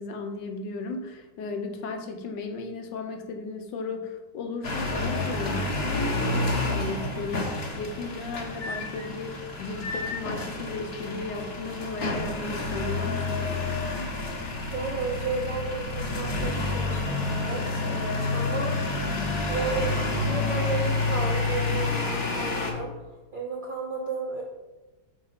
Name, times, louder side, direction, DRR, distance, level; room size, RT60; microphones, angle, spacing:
voice 1, 0.0-13.6, left 3 dB, 85° left, 5 dB, 1.4 m, -35 dB
sound 1, 4.6-22.7, left 2 dB, 45° left, 0.9 m, -29 dB
voice 2, 14.7-18.8 19.5-22.9 23.3-24.4, right 3 dB, 50° right, -2 dB, 0.6 m, -33 dB
5.4 x 4.1 x 5.7 m, 1.2 s
omnidirectional pair, 1.9 m